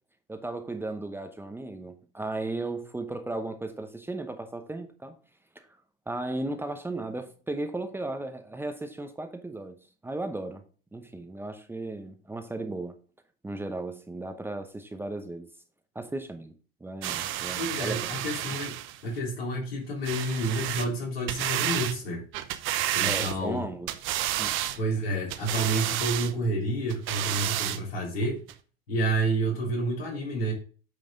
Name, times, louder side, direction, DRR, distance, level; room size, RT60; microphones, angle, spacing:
voice 1, 0.3-5.1 5.5-5.6 6.1-9.8 10.0-10.6 10.9-12.9 13.4-15.5 15.9-16.5 16.8-18.0 23.0-23.9 24.4-24.6, right 2 dB, 5° right, 0.9 m, -35 dB
sound 1, 17.0-19.0 20.0-20.9 21.3-22.0 22.3-23.6 23.9-24.8 25.3-26.3 26.9-27.8 28.5-28.6, right 13 dB, 40° right, 0.8 m, -30 dB
voice 2, 17.5-18.7 19.0-22.2 22.9-23.6 24.8-28.4 28.9-30.5, right 1 dB, 75° left, 3.6 m, -29 dB
9.1 x 5.3 x 3.7 m
figure-of-eight pair, 85°, 31 cm